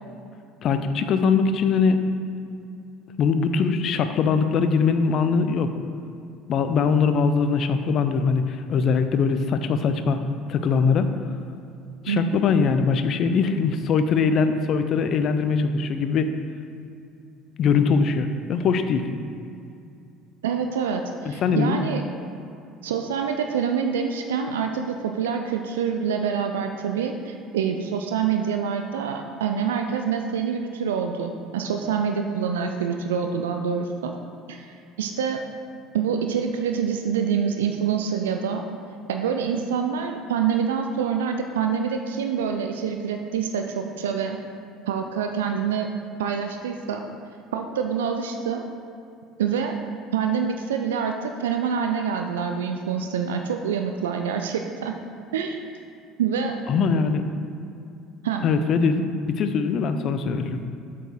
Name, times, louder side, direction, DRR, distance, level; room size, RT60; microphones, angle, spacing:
voice 1, 0.6-2.0 3.2-5.7 6.5-10.2 10.5-11.1 12.0-16.3 17.6-19.1 21.2-21.8 56.7-57.2 58.4-60.6, left 5 dB, 45° left, 9 dB, 0.5 m, -22 dB
voice 2, 12.1-12.5 20.4-22.0 22.8-34.1 34.5-35.4 35.9-38.7 39.1-44.4 44.9-45.9 46.2-47.0 47.5-48.6 49.4-49.8 50.1-55.0 55.3-55.6 56.2-56.6 58.2-58.4, right 7 dB, 70° right, 4 dB, 0.3 m, -26 dB
7.7 x 4.6 x 4.6 m, 2.5 s
figure-of-eight pair, 60°, 0 cm